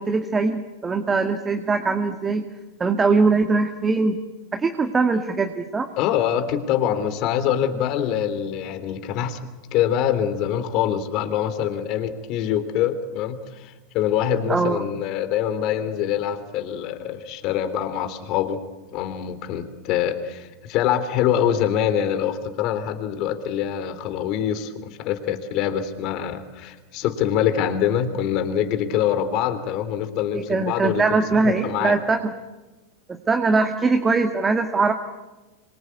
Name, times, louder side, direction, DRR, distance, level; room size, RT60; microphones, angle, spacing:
voice 1, 0.0-2.4 2.8-4.2 4.5-5.9 14.5-14.8 30.3-32.3 33.1-34.9, right 4 dB, 20° right, 6 dB, 1.9 m, -21 dB
voice 2, 6.0-18.6 18.9-31.0 31.3-32.0, left 10 dB, 50° left, 10 dB, 3.1 m, -24 dB
26.0 x 23.5 x 8.3 m, 1.2 s
hypercardioid pair, 95°, 0 cm